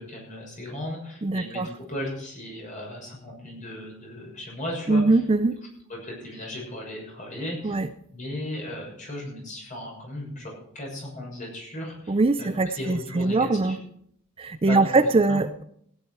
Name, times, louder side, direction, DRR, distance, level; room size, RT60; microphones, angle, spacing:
voice 1, 0.0-5.2 5.9-7.8 8.1-13.8 14.7-14.9 15.3-15.4, left 1 dB, 40° left, -1 dB, 6.6 m, -36 dB
voice 2, 1.2-1.7 4.9-5.6 7.6-7.9 12.1-13.8 14.4-15.6, right 3 dB, 30° right, 10 dB, 0.5 m, -22 dB
16.5 x 10.0 x 4.7 m, 0.68 s
head